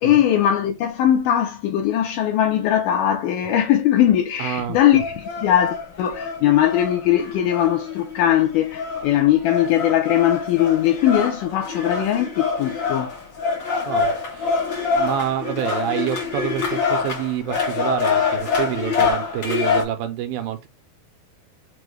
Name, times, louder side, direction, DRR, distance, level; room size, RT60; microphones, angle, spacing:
voice 1, 0.0-13.1, left 11 dB, 80° left, 1.9 m, -20 dB
voice 2, 4.4-5.0 13.9-14.6 14.9-20.7, right 11 dB, 80° right, 2.3 m, -27 dB
sound 1, 4.9-19.8, left 5 dB, 60° left, 1.2 m, -25 dB
6.0 x 2.1 x 3.1 m
omnidirectional pair, 4.2 m